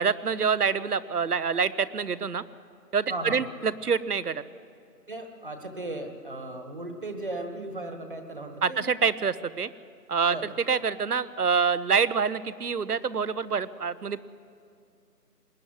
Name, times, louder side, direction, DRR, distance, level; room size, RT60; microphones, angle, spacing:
voice 1, 0.0-2.4 2.9-4.4 8.6-9.7 10.1-14.3, right 6 dB, 65° right, 17 dB, 0.9 m, -26 dB
voice 2, 3.1-3.4 5.1-8.8 10.2-10.5, right 2 dB, 30° right, 6 dB, 1.6 m, -36 dB
20.5 x 20.0 x 9.6 m, 2.4 s
figure-of-eight pair, 175°, 48 cm